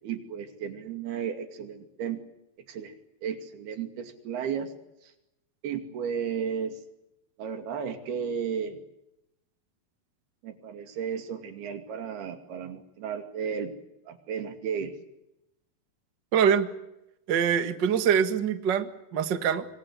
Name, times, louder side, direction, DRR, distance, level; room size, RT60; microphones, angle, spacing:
voice 1, 0.0-2.2 2.7-4.7 5.0-5.1 5.6-6.8 7.4-8.9 10.4-13.7 14.1-14.9, right 7 dB, 80° right, 7 dB, 4.4 m, -34 dB
voice 2, 16.3-16.7 17.3-19.7, right 8 dB, 45° right, 9 dB, 1.5 m, -24 dB
26.5 x 23.0 x 8.3 m, 0.89 s
omnidirectional pair, 4.5 m